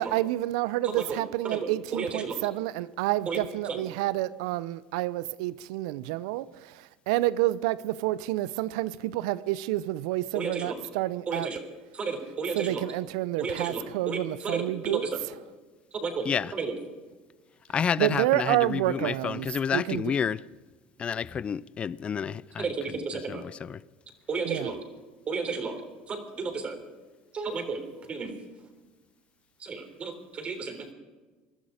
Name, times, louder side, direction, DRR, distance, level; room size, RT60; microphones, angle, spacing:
voice 1, 0.0-11.5 12.5-15.0 18.0-19.5 19.7-20.0 24.5-24.7, right 16 dB, 75° right, 0.6 m, -29 dB
voice 2, 0.8-1.2 1.4-2.4 3.3-3.4 3.6-3.8 10.3-10.8 11.3-11.6 11.9-12.9 13.4-15.2 15.9-16.3 16.5-16.8 22.6-23.4 24.3-24.7 25.3-25.7 26.1-26.8 27.3-28.3 29.6-30.9, right 4 dB, 35° right, 3.6 m, -33 dB
voice 3, 17.7-20.4 21.0-23.8, left 7 dB, 35° left, 0.5 m, -30 dB
21.0 x 12.5 x 5.0 m
supercardioid pair, 85°, 3 cm